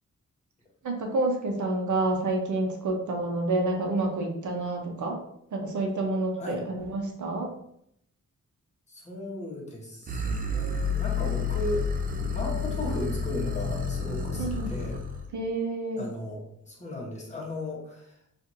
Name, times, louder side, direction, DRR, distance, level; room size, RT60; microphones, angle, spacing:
voice 1, 0.8-5.2 5.5-7.5 14.4-14.7 15.3-16.0, right 2 dB, 70° right, 1 dB, 0.8 m, -28 dB
voice 2, 8.9-11.9 12.3-15.0 15.9-18.1, left 1 dB, 20° left, -3 dB, 1.0 m, -36 dB
sound 1, 10.1-15.3, left 4 dB, 30° right, 0.4 m, -30 dB
4.3 x 2.5 x 2.6 m, 0.72 s
wide cardioid pair, 140°, 31 cm